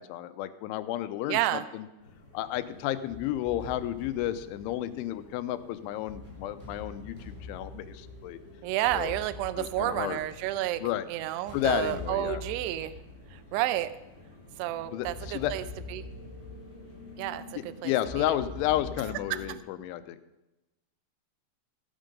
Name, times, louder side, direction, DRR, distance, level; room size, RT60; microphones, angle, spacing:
voice 1, 0.0-1.9 2.3-8.4 8.9-9.1 9.6-10.2 10.8-11.1 11.5-12.4 14.9-15.5 17.8-20.2, left 13 dB, 85° left, 12 dB, 3.1 m, -32 dB
voice 2, 1.3-1.7 8.6-10.8 11.1-12.9 13.3-13.9 14.6-16.0 17.2-18.4 19.3-19.4, right 15 dB, 85° right, 14 dB, 2.4 m, -31 dB
sound 1, 2.0-19.1, left 2 dB, 25° left, 3.3 m, -54 dB
sound 2, 2.7-19.5, left 2 dB, 5° left, 1.2 m, -45 dB
16.0 x 9.0 x 5.3 m, 1.0 s
omnidirectional pair, 5.4 m